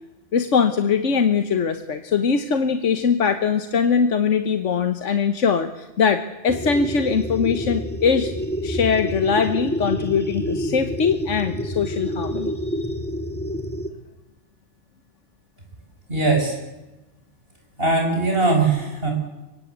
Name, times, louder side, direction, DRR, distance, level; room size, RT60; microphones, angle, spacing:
voice 1, 0.3-8.3 8.6-12.9, left 6 dB, 75° left, 9 dB, 1.5 m, -21 dB
sound 1, 6.5-13.9, equal, 10° left, 2.0 m, -28 dB
voice 2, 16.1-16.6 17.8-19.1, right 3 dB, 50° right, 2 dB, 6.6 m, -20 dB
25.0 x 23.0 x 8.2 m, 1.1 s
omnidirectional pair, 1.3 m